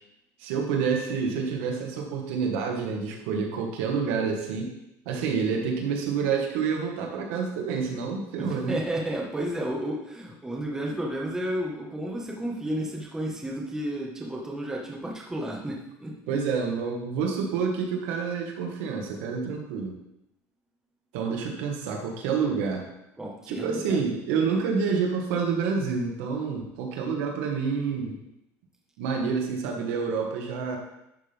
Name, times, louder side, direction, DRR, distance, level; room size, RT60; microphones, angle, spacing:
voice 1, 0.4-4.7 5.1-8.8 16.3-19.9 21.1-22.8 23.5-28.2 29.0-30.8, right 5 dB, 85° right, 1 dB, 1.8 m, -28 dB
voice 2, 8.4-16.1 23.2-24.0, right 1 dB, 10° right, -1 dB, 1.5 m, -32 dB
11.5 x 5.8 x 3.6 m, 0.85 s
cardioid pair, 140°, 7 cm